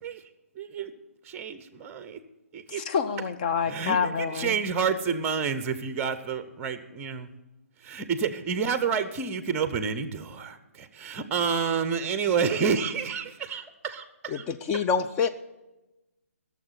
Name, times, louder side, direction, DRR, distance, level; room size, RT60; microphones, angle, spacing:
voice 1, 0.6-0.9 1.3-2.2 2.5-2.8 3.6-7.3 7.8-14.4 14.7-14.8, right 6 dB, 15° right, 0.8 m, -29 dB
voice 2, 2.8-4.5, left 6 dB, 35° left, 0.9 m, -27 dB
voice 3, 14.3-15.3, left 5 dB, 15° left, 0.4 m, -26 dB
15.5 x 7.1 x 8.1 m
figure-of-eight pair, 135°, 8 cm